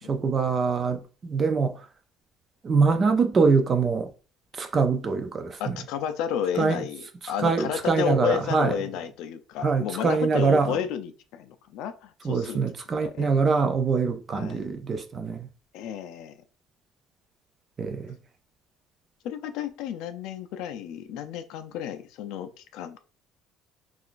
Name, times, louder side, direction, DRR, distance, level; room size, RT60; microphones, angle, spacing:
voice 1, 0.1-1.8 2.6-4.1 4.6-5.8 6.6-6.8 7.4-8.7 9.6-10.8 12.2-15.5 17.8-18.2, right 4 dB, 25° right, 0.3 m, -24 dB
voice 2, 5.6-12.6 13.0-13.4 14.3-14.7 15.7-16.4 19.2-23.0, left 9 dB, 70° left, 0.4 m, -32 dB
3.7 x 2.4 x 2.4 m
cardioid pair, 175°, 0 cm